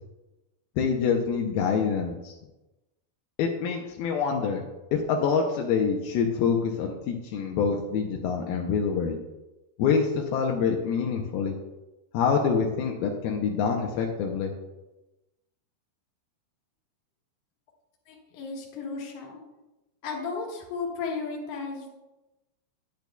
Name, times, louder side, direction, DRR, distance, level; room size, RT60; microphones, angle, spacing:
voice 1, 0.8-2.3 3.4-4.6 4.9-9.2 9.8-11.5 12.1-14.5, left 6 dB, 85° left, 1 dB, 2.2 m, -26 dB
voice 2, 18.1-19.4 20.0-21.9, left 4 dB, 60° left, -1 dB, 2.3 m, -34 dB
10.5 x 10.0 x 2.3 m, 1.0 s
omnidirectional pair, 5.2 m